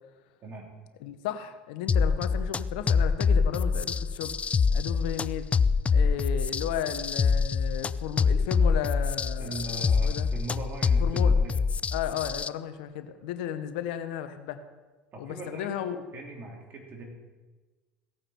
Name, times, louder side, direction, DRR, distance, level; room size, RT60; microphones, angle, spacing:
voice 1, 1.0-4.3 4.7-5.5 5.9-10.3 11.0-11.3 11.9-14.6 15.2-16.0, left 10 dB, 70° left, 10 dB, 0.9 m, -34 dB
sound 1, 1.9-12.5, left 5 dB, 25° left, 0.4 m, -25 dB
voice 2, 9.4-11.6 15.1-15.7 16.1-17.0, right 1 dB, 40° right, 0 dB, 3.4 m, -39 dB
16.0 x 9.0 x 4.3 m, 1.3 s
hypercardioid pair, 75°, 5 cm